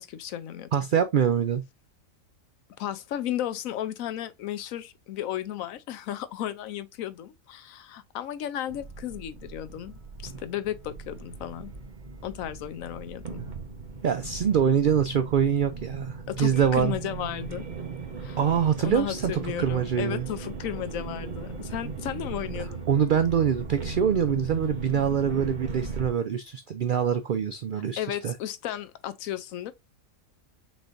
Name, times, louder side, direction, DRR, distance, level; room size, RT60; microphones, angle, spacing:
voice 1, 0.0-0.7 2.8-11.7 12.2-13.5 16.3-17.7 18.2-18.4 18.8-22.9 28.0-29.7, left 11 dB, 75° left, 1.0 m, -34 dB
voice 2, 0.7-1.6 14.0-16.9 18.4-20.3 21.9-22.0 22.9-28.3, right 8 dB, 90° right, 0.4 m, -24 dB
sound 1, 8.7-26.1, right 4 dB, 40° right, 0.9 m, -38 dB
6.1 x 3.2 x 2.5 m
omnidirectional pair, 1.5 m